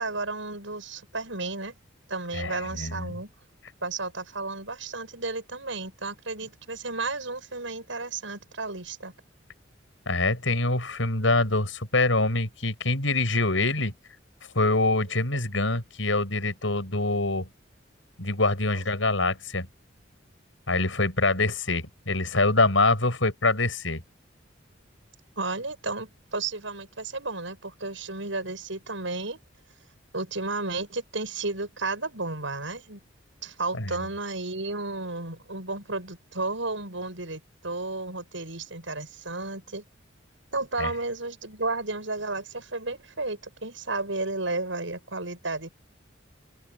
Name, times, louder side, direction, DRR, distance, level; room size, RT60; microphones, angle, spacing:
voice 1, 0.0-1.8 2.1-3.3 3.8-9.1 25.4-29.4 30.1-33.0 33.4-39.8 40.5-45.7, right 3 dB, 75° right, 7.5 m, -33 dB
voice 2, 2.3-3.1 10.1-13.9 14.5-17.5 18.2-19.7 20.7-24.0 33.7-33.9 40.8-40.9, left 2 dB, 80° left, 6.7 m, -25 dB
open air
head